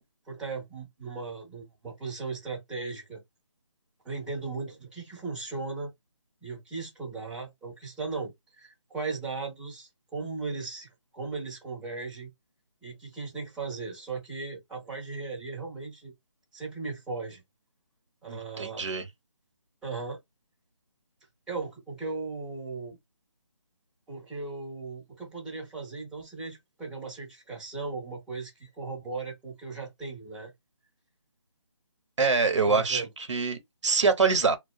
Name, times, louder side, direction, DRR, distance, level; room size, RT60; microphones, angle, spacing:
voice 1, 0.3-3.2 4.0-5.9 6.4-8.3 8.6-12.3 12.8-16.1 16.5-17.4 18.2-18.9 19.8-20.2 21.5-23.0 24.1-30.5 32.6-33.1, right 4 dB, 5° right, 0.8 m, -37 dB
voice 2, 18.3-19.0 32.2-34.6, right 4 dB, 75° right, 0.8 m, -25 dB
2.3 x 2.3 x 2.2 m
figure-of-eight pair, 165°, 16 cm